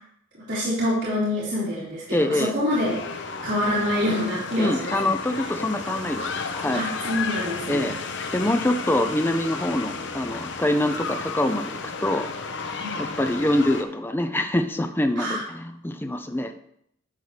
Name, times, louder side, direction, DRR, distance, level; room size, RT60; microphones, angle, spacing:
voice 1, 0.5-3.0 3.4-5.0 6.7-7.9 12.8-12.9 15.2-15.4, left 1 dB, 65° right, -10 dB, 3.8 m, -26 dB
voice 2, 2.1-2.5 4.6-6.8 7.7-7.9 8.3-12.3 12.6-16.6, left 1 dB, 10° left, 7 dB, 0.5 m, -25 dB
sound 1, 2.7-13.8, left 4 dB, 70° left, 0.8 m, -33 dB
12.0 x 5.7 x 3.3 m, 0.71 s
head